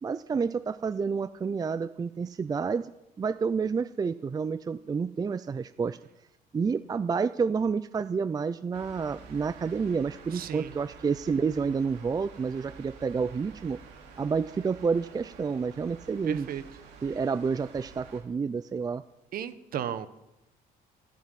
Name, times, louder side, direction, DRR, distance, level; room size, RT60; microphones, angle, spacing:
voice 1, 0.0-2.8 3.2-6.0 6.5-13.8 14.2-16.5 17.0-19.0, right 5 dB, 20° right, 14 dB, 0.4 m, -29 dB
sound 1, 8.7-18.2, right 5 dB, 85° right, 3.6 m, -50 dB
voice 2, 10.3-10.7 16.3-16.6 19.3-20.1, right 9 dB, 60° right, 12 dB, 1.3 m, -34 dB
15.0 x 9.0 x 9.3 m, 0.92 s
cardioid pair, 110°, 17 cm